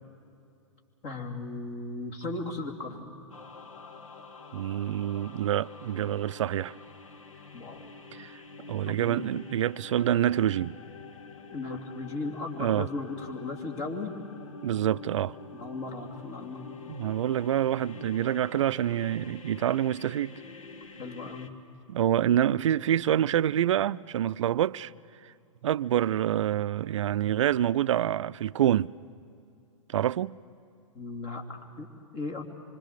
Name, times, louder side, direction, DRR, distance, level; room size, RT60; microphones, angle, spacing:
voice 1, 1.0-3.1 7.5-7.9 8.9-9.2 11.5-14.1 15.5-16.8 21.0-21.5 22.5-22.6 30.9-31.9 32.1-32.4, left 3 dB, 40° left, 2.8 m, -36 dB
sound 1, 3.3-21.5, left 4 dB, 75° left, 1.5 m, -47 dB
voice 2, 4.5-6.7 8.1-8.4 8.7-10.8 12.6-12.9 14.6-15.4 16.9-20.3 21.9-24.9 25.6-28.9 29.9-30.4, right 11 dB, 65° right, 0.5 m, -26 dB
26.0 x 25.5 x 6.7 m
figure-of-eight pair, 110°, 17 cm